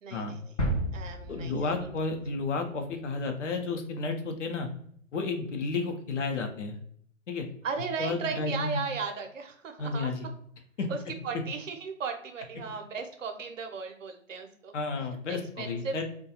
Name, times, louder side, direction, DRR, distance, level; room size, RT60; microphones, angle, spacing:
voice 1, 0.0-0.6 0.9-1.9 7.6-10.1 10.9-11.0 11.2-16.0, right 5 dB, 70° right, 5 dB, 0.7 m, -36 dB
sound 1, 0.6-2.5 2.9-3.0, right 1 dB, 25° left, 0.4 m, -33 dB
voice 2, 1.3-4.7 5.1-6.7 7.3-7.5 8.0-8.8 9.8-10.3 10.8-10.9 14.7-16.0, left 3 dB, 65° left, 5 dB, 0.7 m, -32 dB
2.3 x 2.2 x 2.7 m, 0.63 s
figure-of-eight pair, 125°, 39 cm